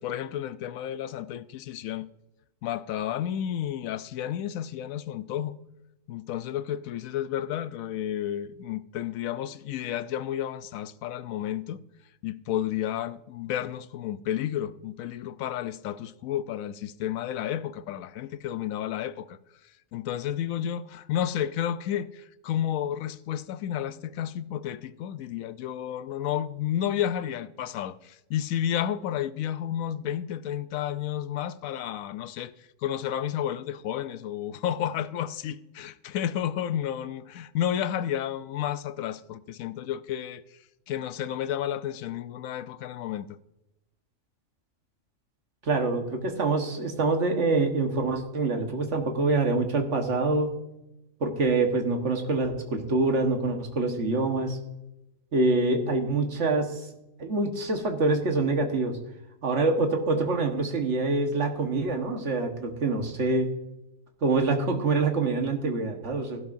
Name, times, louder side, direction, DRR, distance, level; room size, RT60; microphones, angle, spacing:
voice 1, 0.0-2.1 2.6-5.6 6.1-11.8 12.2-19.4 19.9-32.5 32.8-40.4 40.9-43.4, left 10 dB, 85° left, 1.0 m, -31 dB
voice 2, 45.6-50.6 51.2-54.6 55.3-56.8 57.2-58.9 59.4-63.5 64.2-66.4, right 3 dB, 60° right, 1.7 m, -25 dB
15.0 x 12.0 x 2.6 m
omnidirectional pair, 1.4 m